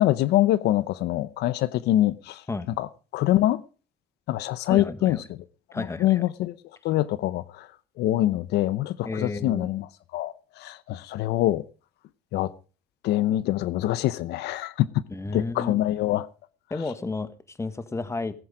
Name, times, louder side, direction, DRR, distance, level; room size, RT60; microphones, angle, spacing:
voice 1, 0.0-2.4 2.8-2.9 3.1-3.6 4.3-5.2 5.8-6.5 6.8-7.7 8.0-9.9 10.1-11.6 12.3-12.5 13.0-15.0 15.3-16.3, left 14 dB, 80° left, 0.8 m, -24 dB
voice 2, 4.7-5.2 5.7-6.2 9.0-9.7 15.1-15.8 16.7-18.3, left 3 dB, 15° left, 1.5 m, -32 dB
18.0 x 9.7 x 5.0 m
cardioid pair, 110°, 17 cm